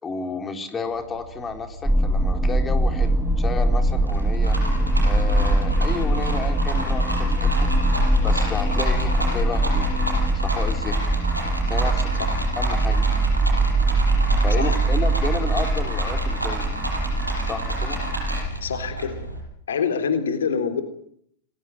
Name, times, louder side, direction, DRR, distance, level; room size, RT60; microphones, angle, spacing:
voice 1, 0.0-4.6 5.0-7.7 8.2-9.9 10.3-11.0 11.7-12.1 12.6-13.1 14.3-16.7 17.4-18.0, left 4 dB, 20° left, 6 dB, 3.9 m, -32 dB
Rattle, 0.8-19.4, right 1 dB, 85° right, 6.4 m, -31 dB
sound 1, 1.8-18.5, right 2 dB, 5° right, 1.7 m, -22 dB
sound 2, 4.5-10.3, left 6 dB, 40° left, 5.0 m, -34 dB
voice 2, 18.6-19.1 19.7-20.8, left 6 dB, 65° left, 8 dB, 3.6 m, -25 dB
29.5 x 21.5 x 9.2 m, 0.69 s
figure-of-eight pair, 90°, 0 cm